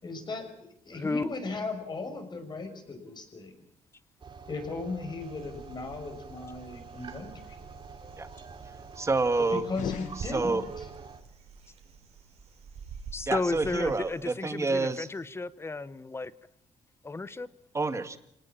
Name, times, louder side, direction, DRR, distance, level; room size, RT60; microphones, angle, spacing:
voice 1, 0.0-3.5 4.5-7.6 9.5-10.9, left 3 dB, 35° left, 5 dB, 6.3 m, -37 dB
voice 2, 0.9-1.3 13.1-16.3 17.0-17.5, left 3 dB, 20° left, 16 dB, 1.0 m, -33 dB
sound 1, 4.2-11.2, right 5 dB, 40° right, 3.1 m, -47 dB
sound 2, 5.2-14.2, right 5 dB, 65° right, 4.2 m, -48 dB
voice 3, 9.0-9.6 10.3-10.6 13.3-15.1 17.7-18.2, right 3 dB, 25° right, 9 dB, 2.0 m, -28 dB
sound 3, 9.7-11.0, left 10 dB, 80° left, 1.3 m, -39 dB
27.0 x 19.0 x 7.4 m, 0.76 s
cardioid pair, 115°, 12 cm